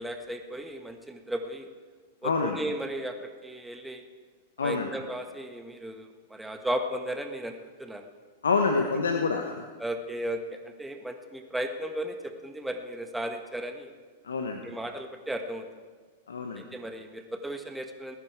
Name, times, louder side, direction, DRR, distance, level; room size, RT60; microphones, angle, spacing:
voice 1, 0.0-1.7 2.2-4.0 4.6-8.1 9.8-13.9 14.6-15.7 16.6-18.2, right 1 dB, 5° right, 5 dB, 1.5 m, -35 dB
voice 2, 2.2-2.6 4.6-4.9 8.4-9.6 14.2-14.6 16.3-16.6, left 4 dB, 85° left, 4 dB, 1.1 m, -27 dB
20.0 x 9.9 x 4.7 m, 1.5 s
hypercardioid pair, 105°, 0 cm